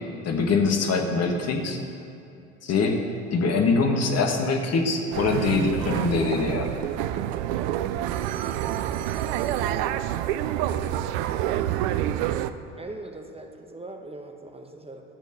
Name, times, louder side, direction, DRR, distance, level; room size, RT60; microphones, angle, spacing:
voice 1, 0.3-1.8 2.6-3.0 3.3-6.7, left 4 dB, 45° left, 3 dB, 1.8 m, -23 dB
sound 1, 5.1-12.5, right 12 dB, 60° right, 0.6 m, -27 dB
voice 2, 8.8-9.5 12.3-15.0, right 2 dB, 15° right, 3 dB, 1.3 m, -42 dB
11.5 x 8.2 x 6.8 m, 2.6 s
figure-of-eight pair, 60°, 36 cm